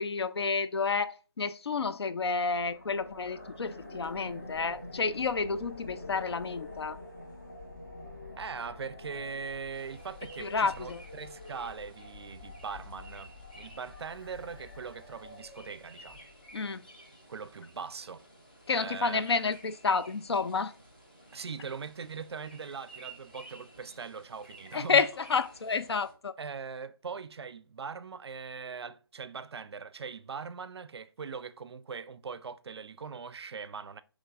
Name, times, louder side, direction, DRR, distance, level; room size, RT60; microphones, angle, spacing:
voice 1, 0.0-7.0 10.4-11.0 16.5-16.8 18.7-20.7 24.7-26.3, left 5 dB, 75° left, 0.4 m, -30 dB
sound 1, 2.5-16.6, left 2 dB, 45° left, 0.9 m, -47 dB
voice 2, 8.4-16.2 17.3-18.2 18.7-19.2 21.3-25.0 26.4-34.0, right 5 dB, 80° right, 0.4 m, -41 dB
sound 2, 9.7-26.1, right 2 dB, 20° left, 0.6 m, -54 dB
3.9 x 3.0 x 2.4 m
hypercardioid pair, 180°, 13 cm